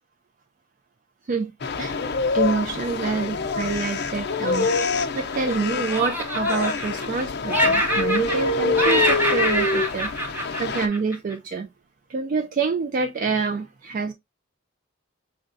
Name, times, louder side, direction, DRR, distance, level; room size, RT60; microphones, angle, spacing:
sound 1, 1.6-10.9, left 4 dB, 55° left, 0.5 m, -25 dB
voice 1, 1.8-11.7 12.1-14.1, right 4 dB, 45° right, 0.3 m, -27 dB
Laughter, 4.3-5.6 5.9-7.2 7.5-8.5 8.8-11.3, right 1 dB, 10° right, 0.8 m, -25 dB
6.2 x 2.1 x 2.5 m
head